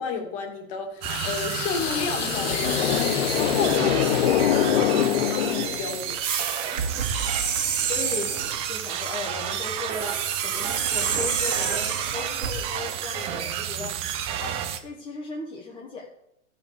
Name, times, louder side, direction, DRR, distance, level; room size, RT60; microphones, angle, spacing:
voice 1, 0.0-6.2, left 5 dB, 35° left, 3 dB, 2.2 m, -32 dB
sound 1, 1.0-14.8, right 9 dB, 15° right, 0.5 m, -31 dB
sound 2, 1.1-6.1, left 11 dB, 55° left, 0.7 m, -24 dB
sound 3, 6.2-8.6 9.9-12.6, right 7 dB, 90° right, 1.7 m, -28 dB
voice 2, 6.7-7.4 7.8-8.3 8.7-10.2 10.4-13.9 14.4-16.1, left 4 dB, 10° left, -4 dB, 1.4 m, -37 dB
12.5 x 5.5 x 6.7 m, 0.80 s
hypercardioid pair, 150°, 38 cm